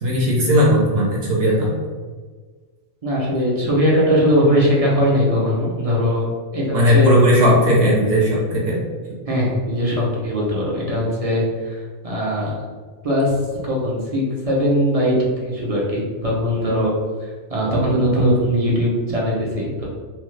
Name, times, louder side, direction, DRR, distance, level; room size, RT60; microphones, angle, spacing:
voice 1, 0.0-1.7 6.7-8.8, equal, 65° right, -4 dB, 0.9 m, -16 dB
voice 2, 3.0-7.1 9.3-12.6 13.0-13.3 13.6-16.9 17.2-19.8, equal, 40° right, -5 dB, 0.6 m, -20 dB
2.8 x 2.3 x 3.1 m, 1.5 s
omnidirectional pair, 1.2 m